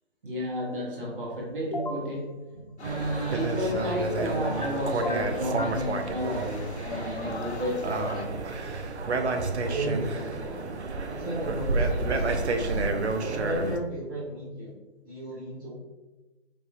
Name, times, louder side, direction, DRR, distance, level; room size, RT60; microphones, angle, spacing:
voice 1, 0.2-8.0, equal, 55° right, -2 dB, 1.4 m, -32 dB
sound 1, 1.7-2.1 4.1-4.7 5.0-5.8, left 2 dB, 45° left, 0.4 m, -33 dB
sound 2, 2.8-8.3, left 3 dB, 85° left, 0.7 m, -41 dB
sound 3, 2.8-13.8, right 3 dB, 85° right, 0.6 m, -30 dB
voice 2, 9.6-10.6 11.1-12.8 13.1-14.7 15.0-15.7, right 1 dB, 20° right, -12 dB, 0.9 m, -34 dB
4.6 x 3.0 x 2.6 m, 1.1 s
figure-of-eight pair, 155°, 32 cm